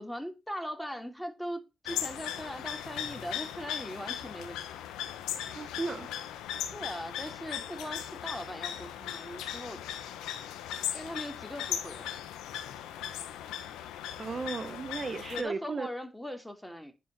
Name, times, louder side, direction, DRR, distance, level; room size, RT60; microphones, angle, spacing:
voice 1, 0.0-4.6 6.7-9.8 10.9-12.2 15.3-16.9, equal, 5° left, 2.9 m, -40 dB
sound 1, 1.9-15.4, left 10 dB, 85° left, 1.1 m, -38 dB
voice 2, 5.5-6.1 14.2-15.9, right 4 dB, 45° right, 1.0 m, -35 dB
10.5 x 4.7 x 6.1 m
hypercardioid pair, 40°, 0 cm